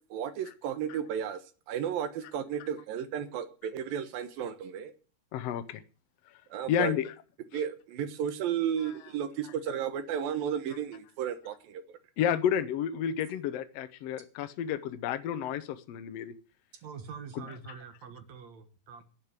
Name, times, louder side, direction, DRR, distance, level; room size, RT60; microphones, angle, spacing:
voice 1, 0.1-1.4 1.7-4.9 6.5-6.9 7.5-12.0, right 8 dB, 75° right, 2.9 m, -33 dB
voice 2, 5.3-5.8 6.7-7.1 7.5-7.6 12.2-16.3 17.4-17.5, left 9 dB, 85° left, 1.4 m, -31 dB
voice 3, 16.8-19.0, right 6 dB, 55° right, 2.3 m, -45 dB
10.5 x 10.5 x 8.1 m
omnidirectional pair, 4.2 m